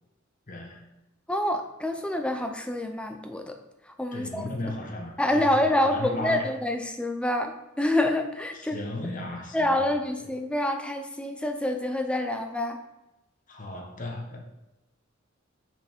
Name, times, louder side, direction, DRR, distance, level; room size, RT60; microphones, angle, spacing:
voice 1, 0.5-0.9 4.1-6.5 8.5-9.9 13.5-14.4, left 1 dB, 40° left, 1 dB, 1.1 m, -35 dB
voice 2, 1.3-3.6 4.0-4.5 5.2-8.8 9.5-12.8, left 1 dB, 5° left, 5 dB, 0.6 m, -27 dB
6.1 x 5.3 x 4.5 m, 0.99 s
head